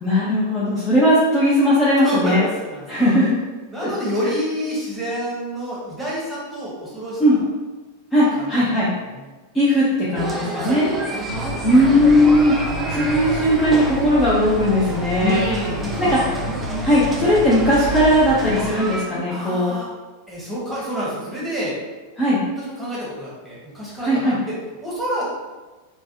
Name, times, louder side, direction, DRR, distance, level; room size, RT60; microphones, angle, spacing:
voice 1, 0.0-2.4 2.9-3.3 7.2-7.4 8.1-8.9 9.5-10.9 11.6-12.5 12.9-15.4 16.0-16.2 16.8-19.8 22.2-22.4 24.0-24.4, equal, 15° left, -9 dB, 0.7 m, -18 dB
voice 2, 2.0-2.9 3.7-7.5 8.3-8.7 9.0-9.4 10.5-11.4 15.1-16.5 19.3-19.9 20.3-21.8 22.5-24.5 24.8-25.2, equal, ahead, -8 dB, 1.2 m, -28 dB
sound 1, 10.2-19.1, right 2 dB, 20° right, 0.5 m, -29 dB
sound 2, 11.3-18.7, left 1 dB, 80° left, 0.7 m, -31 dB
3.3 x 2.2 x 2.7 m, 1.2 s
figure-of-eight pair, 90°, 0 cm